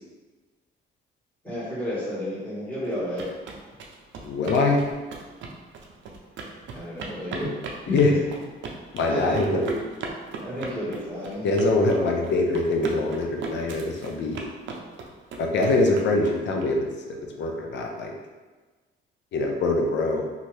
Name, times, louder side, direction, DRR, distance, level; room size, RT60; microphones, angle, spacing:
voice 1, 1.4-3.3 6.7-7.5 7.9-8.2 9.1-9.7 10.4-12.1, equal, 5° left, -11 dB, 1.4 m, -31 dB
sound 1, 2.9-16.6, right 4 dB, 70° right, 0.5 m, -39 dB
voice 2, 4.2-4.8 7.9-8.1 8.9-9.6 11.4-14.4 15.4-18.1 19.3-20.2, left 2 dB, 65° left, 2 dB, 0.5 m, -23 dB
2.6 x 2.5 x 3.1 m, 1.3 s
cardioid pair, 90°, 20 cm